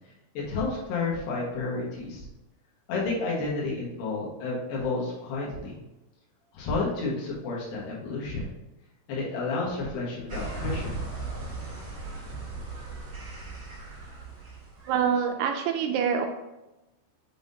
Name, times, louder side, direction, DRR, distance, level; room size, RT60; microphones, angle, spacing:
voice 1, 0.4-2.3 2.9-5.8 6.5-8.5 9.1-11.0, left 3 dB, 75° left, -4 dB, 3.4 m, -31 dB
sound 1, 10.3-15.0, right 2 dB, 45° right, 1.0 m, -37 dB
voice 2, 14.9-16.3, right 7 dB, 80° right, 4 dB, 2.4 m, -25 dB
6.9 x 5.5 x 2.7 m, 0.98 s
omnidirectional pair, 4.9 m